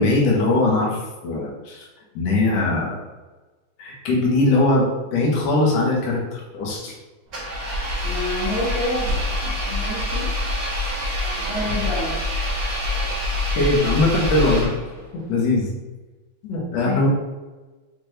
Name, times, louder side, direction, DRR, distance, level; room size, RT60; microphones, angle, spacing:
voice 1, 0.0-1.9 2.2-3.0 3.8-7.0 13.6-14.7 15.1-15.7 16.4-17.1, left 2 dB, 65° left, -3 dB, 2.1 m, -21 dB
Engine, 7.3-15.0, left 1 dB, 70° right, 0.8 m, -26 dB
voice 2, 8.0-9.1 9.4-10.3 11.4-12.2 16.8-17.0, left 2 dB, 85° left, -4 dB, 2.7 m, -28 dB
6.1 x 2.6 x 3.3 m, 1.2 s
omnidirectional pair, 3.5 m